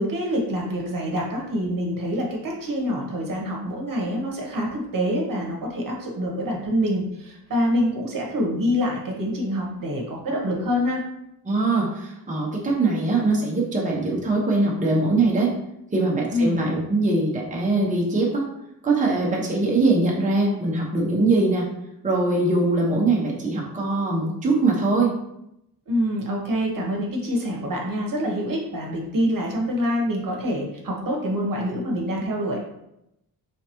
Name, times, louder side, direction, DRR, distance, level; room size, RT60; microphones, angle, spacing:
voice 1, 0.0-11.0 16.3-16.6 25.9-32.6, equal, 60° right, 0 dB, 1.0 m, -26 dB
voice 2, 11.5-15.5 15.9-18.4 18.8-21.7 22.0-25.1, right 2 dB, 20° right, -3 dB, 0.8 m, -22 dB
4.7 x 3.4 x 2.9 m, 0.84 s
wide cardioid pair, 150°, 38 cm